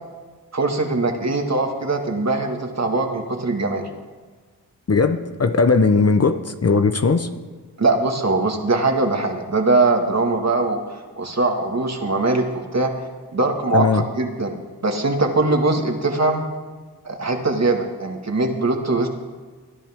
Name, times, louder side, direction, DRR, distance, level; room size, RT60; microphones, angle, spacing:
voice 1, 0.5-3.8 7.8-10.8 11.2-13.0 13.3-16.4 17.0-19.1, right 2 dB, 40° right, 3 dB, 2.0 m, -21 dB
voice 2, 4.9-7.3 13.7-14.0, left 4 dB, 40° left, 8 dB, 0.9 m, -18 dB
21.5 x 10.5 x 3.6 m, 1.4 s
cardioid pair, 45°, 40 cm